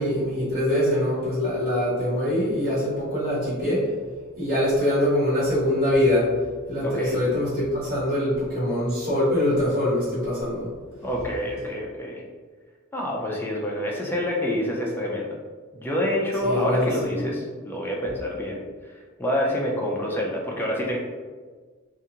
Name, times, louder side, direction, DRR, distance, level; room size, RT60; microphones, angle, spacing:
voice 1, 0.0-3.9 4.4-6.3 6.7-10.7 16.4-16.9, left 1 dB, 50° right, -12 dB, 1.5 m, -23 dB
voice 2, 6.8-7.2 11.0-12.2 12.9-15.4 15.7-18.6 18.9-21.0, left 1 dB, 10° left, -2 dB, 0.4 m, -27 dB
2.8 x 2.5 x 2.4 m, 1.5 s
head